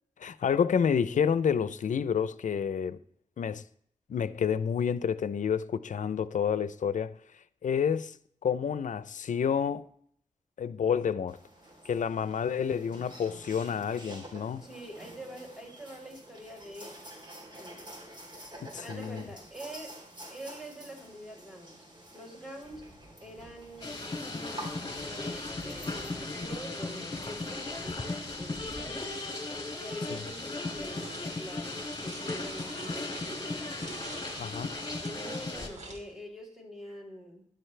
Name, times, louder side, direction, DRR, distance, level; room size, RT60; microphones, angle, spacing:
voice 1, 0.2-3.0 3.4-3.6 4.1-7.1 7.6-8.2 8.4-9.8 10.6-11.4 11.8-14.7 18.6-19.2 30.1-30.2 34.4-34.7, left 7 dB, 85° left, 0.6 m, -29 dB
sound 1, 11.3-26.6, right 1 dB, 35° right, 3.5 m, -49 dB
voice 2, 14.6-17.0 17.5-18.0 18.8-21.7 22.1-22.9 23.2-29.2 29.8-31.7 32.0-33.6 35.0-37.5, equal, 5° right, 4.4 m, -45 dB
sound 2, 23.8-35.7, left 2 dB, 35° left, 3.2 m, -36 dB
sound 3, 31.0-31.3 31.8-36.1, right 2 dB, 65° right, 2.8 m, -46 dB
13.5 x 12.0 x 3.3 m
wide cardioid pair, 90°, 13 cm